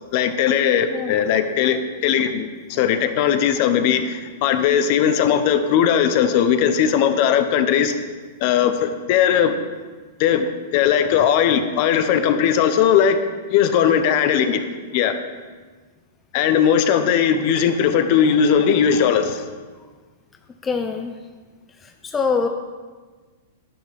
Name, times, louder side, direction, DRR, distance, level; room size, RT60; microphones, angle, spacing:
voice 1, 0.1-7.9 8.4-9.6 10.2-13.2 13.5-14.6 14.9-15.1 16.3-19.4, left 8 dB, 50° left, 9 dB, 0.8 m, -18 dB
voice 2, 20.6-21.2 22.0-22.5, left 5 dB, 15° left, 5 dB, 0.5 m, -23 dB
10.5 x 10.0 x 3.5 m, 1.4 s
hypercardioid pair, 140°, 0 cm